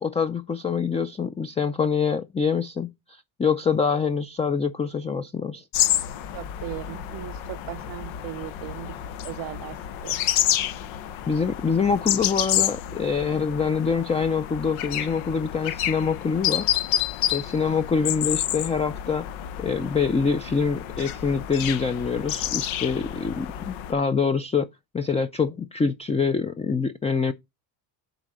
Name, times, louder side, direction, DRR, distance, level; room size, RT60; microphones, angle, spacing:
voice 1, 0.0-5.6 11.3-16.7 17.3-19.3 19.6-24.7 24.9-27.3, left 5 dB, 15° left, 0.4 m, -25 dB
sound 1, 5.7-23.9, left 11 dB, 90° left, 0.9 m, -29 dB
voice 2, 6.3-10.2, right 15 dB, 60° right, 0.5 m, -38 dB
7.9 x 4.0 x 6.2 m
cardioid pair, 110°, 45 cm